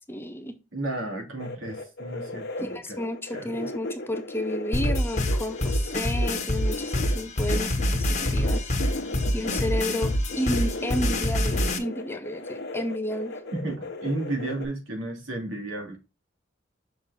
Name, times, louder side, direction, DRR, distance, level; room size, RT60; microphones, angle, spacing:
voice 1, 0.1-0.6 2.6-8.7 9.3-13.3, equal, 10° left, 7 dB, 0.7 m, -32 dB
voice 2, 0.7-3.0 3.3-3.5 13.5-16.0, right 2 dB, 80° right, 0 dB, 3.0 m, -33 dB
sound 1, 1.4-14.7, left 2 dB, 55° left, 1.3 m, -36 dB
sound 2, 4.7-11.8, left 1 dB, 35° left, 1.4 m, -26 dB
6.3 x 6.1 x 2.7 m, 0.29 s
head